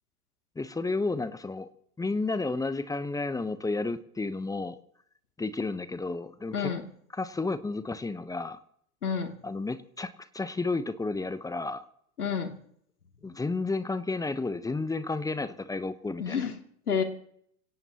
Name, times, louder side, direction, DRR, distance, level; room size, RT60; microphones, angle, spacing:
voice 1, 0.5-1.7 2.0-4.8 5.4-6.7 7.1-8.6 9.4-11.9 13.2-16.4, left 3 dB, 10° left, 13 dB, 0.9 m, -32 dB
voice 2, 9.0-9.3 12.2-12.5 16.2-16.5 16.9-17.0, left 6 dB, 80° left, 4 dB, 2.7 m, -29 dB
26.0 x 17.0 x 2.9 m, 0.66 s
figure-of-eight pair, 95°, 44 cm